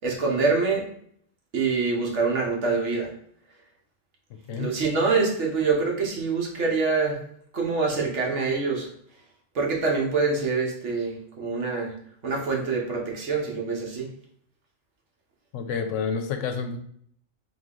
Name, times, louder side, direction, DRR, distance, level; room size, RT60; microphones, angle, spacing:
voice 1, 0.0-0.9 1.5-3.1 4.5-7.2 7.5-8.9 9.5-11.9 12.2-14.1, right 4 dB, 70° right, 0 dB, 1.3 m, -25 dB
voice 2, 15.5-16.8, left 6 dB, 85° left, 7 dB, 0.9 m, -29 dB
3.8 x 3.0 x 3.8 m, 0.65 s
omnidirectional pair, 1.3 m